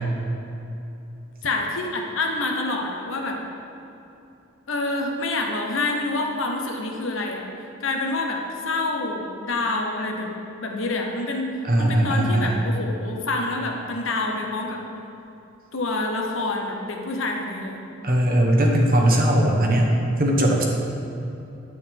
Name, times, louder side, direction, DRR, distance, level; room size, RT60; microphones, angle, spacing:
voice 1, 1.4-3.4 4.7-7.5 7.8-10.3 10.6-11.5 11.8-14.8 15.7-17.8, left 2 dB, 70° left, 1 dB, 1.1 m, -27 dB
voice 2, 11.7-12.6 18.0-20.6, right 1 dB, 45° right, 0 dB, 1.2 m, -19 dB
9.7 x 8.1 x 3.6 m, 2.9 s
head